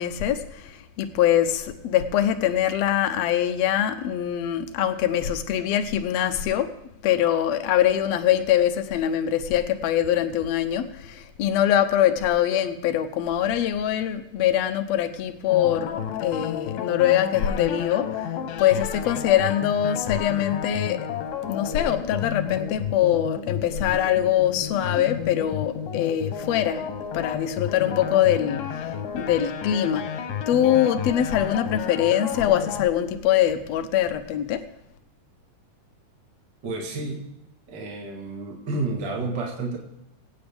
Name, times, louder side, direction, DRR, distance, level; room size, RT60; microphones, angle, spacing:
voice 1, 0.0-6.7 7.0-21.1 21.4-26.9 27.1-30.2 30.5-34.6, left 11 dB, 70° left, 7 dB, 1.7 m, -23 dB
sound 1, 15.5-32.9, left 8 dB, 90° left, 2.7 m, -32 dB
voice 2, 36.6-37.3 37.7-39.8, right 3 dB, 45° right, 0 dB, 1.7 m, -30 dB
23.0 x 8.5 x 3.5 m, 0.83 s
omnidirectional pair, 3.8 m